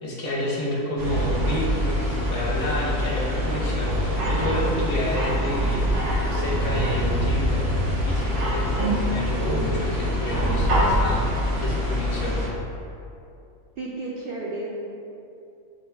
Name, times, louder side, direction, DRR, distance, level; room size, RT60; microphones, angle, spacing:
voice 1, 0.0-5.8 6.3-7.6 8.1-11.3 11.6-12.4, left 1 dB, 60° left, -5 dB, 1.3 m, -30 dB
sound 1, 1.0-12.5, equal, 45° right, 0.9 m, -24 dB
voice 2, 13.8-14.7, right 2 dB, 75° right, -4 dB, 0.5 m, -33 dB
4.5 x 3.5 x 3.3 m, 2.6 s
omnidirectional pair, 1.5 m